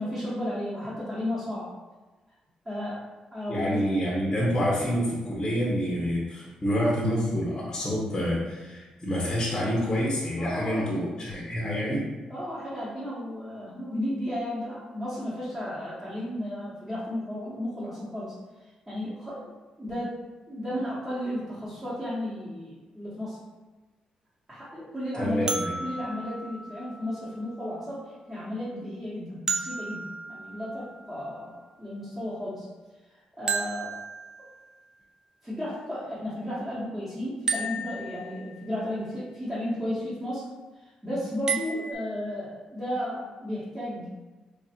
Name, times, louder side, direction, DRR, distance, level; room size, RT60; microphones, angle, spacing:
voice 1, 0.0-1.7 2.6-3.0 3.3-3.9 10.4-10.9 12.3-18.3 18.9-19.5 19.8-20.2 20.5-23.4 24.5-31.5 31.8-32.7 33.1-34.0 35.4-40.5 40.8-44.1, left 1 dB, 10° right, -11 dB, 1.1 m, -33 dB
voice 2, 3.5-12.1 25.1-25.7, equal, 25° left, -5 dB, 0.8 m, -27 dB
sound 1, 25.5-27.4 29.5-31.3 33.5-34.9 37.5-38.8 41.5-41.9, right 4 dB, 30° right, 0.3 m, -33 dB
3.2 x 2.4 x 4.3 m, 1.2 s
cardioid pair, 135°, 2 cm